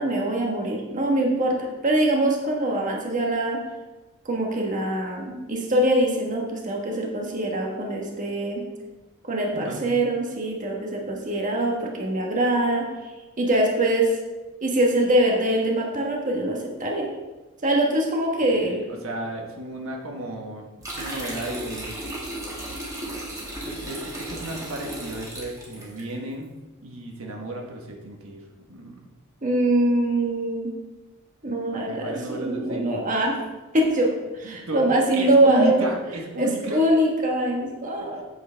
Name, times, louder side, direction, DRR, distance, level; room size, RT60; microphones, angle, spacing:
voice 1, 0.0-3.6 4.2-8.6 9.3-12.9 13.4-14.2 14.6-17.1 17.6-18.8 29.4-30.7 31.4-33.4 33.7-35.8 36.4-38.2, right 1 dB, 35° right, 0 dB, 1.4 m, -23 dB
voice 2, 9.5-9.8 18.6-22.0 23.6-26.5 26.8-28.4 28.7-29.0 31.7-33.0 34.4-36.8 38.0-38.1, right 1 dB, 70° right, 1 dB, 1.3 m, -33 dB
sound 1, 20.8-26.0, right 1 dB, 15° right, 2.1 m, -35 dB
8.9 x 8.4 x 3.4 m, 1.1 s
head